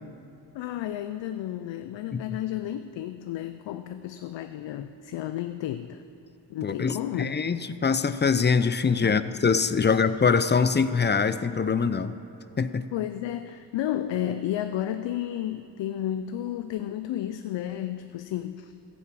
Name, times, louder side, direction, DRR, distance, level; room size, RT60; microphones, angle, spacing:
voice 1, 0.5-6.0 6.5-7.3 9.0-9.2 9.9-10.0 12.9-18.7, left 11 dB, 90° left, 10 dB, 0.5 m, -32 dB
voice 2, 6.6-12.1 12.6-12.9, left 5 dB, 25° left, 13 dB, 0.5 m, -23 dB
14.5 x 7.1 x 7.6 m, 2.7 s
cardioid pair, 65°, 43 cm